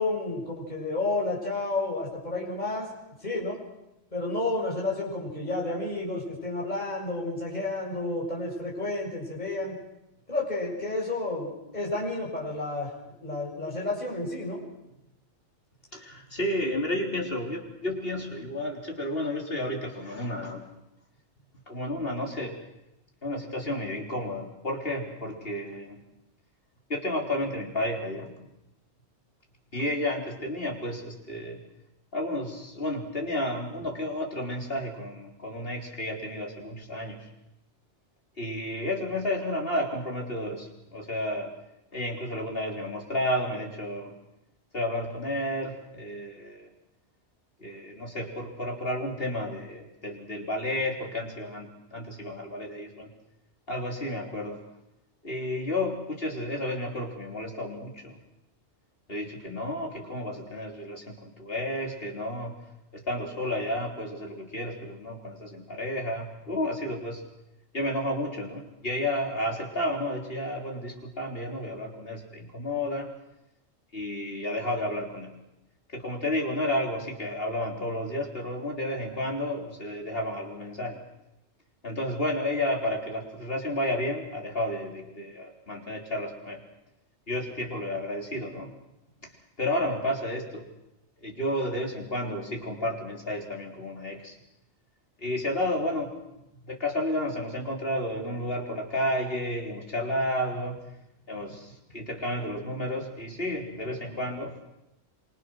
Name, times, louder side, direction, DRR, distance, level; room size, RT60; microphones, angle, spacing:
voice 1, 0.0-2.9 3.2-3.6 4.1-9.8 10.3-12.9 13.2-14.6, left 2 dB, 35° left, -4 dB, 7.5 m, -31 dB
voice 2, 15.9-20.7 21.7-22.6 23.2-26.0 26.9-28.3 29.7-31.6 32.1-37.3 38.4-41.5 41.9-44.2 44.7-46.7 47.6-53.1 53.7-54.6 55.2-58.2 59.1-62.6 62.9-67.2 67.7-73.1 73.9-75.3 75.9-81.0 81.8-86.6 87.3-88.7 89.6-90.7 91.2-94.4 95.2-96.1 96.7-100.8 101.3-104.5, left 1 dB, 55° left, 1 dB, 4.1 m, -31 dB
26.5 x 25.5 x 6.3 m, 0.89 s
omnidirectional pair, 1.2 m